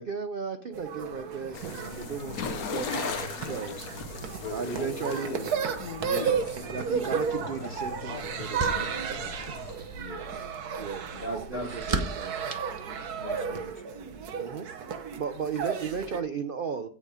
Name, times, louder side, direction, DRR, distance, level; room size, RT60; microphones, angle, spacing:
voice 1, 0.0-3.9 4.5-5.5 6.7-10.1 10.8-12.5 14.3-14.7 15.2-16.9, right 6 dB, 50° right, 9 dB, 0.7 m, -36 dB
sound 1, 0.7-16.2, right 6 dB, 80° right, 1.6 m, -34 dB
sound 2, 1.5-9.8, left 6 dB, 70° left, 1.4 m, -38 dB
voice 2, 2.9-3.3 4.6-5.6 6.1-7.0 8.7-9.1 9.9-10.5 11.1-12.4 13.2-14.1, left 1 dB, 35° left, 4 dB, 2.0 m, -41 dB
sound 3, 7.5-13.6, right 2 dB, 25° right, 1.1 m, -38 dB
16.5 x 5.6 x 4.9 m, 0.43 s
omnidirectional pair, 1.6 m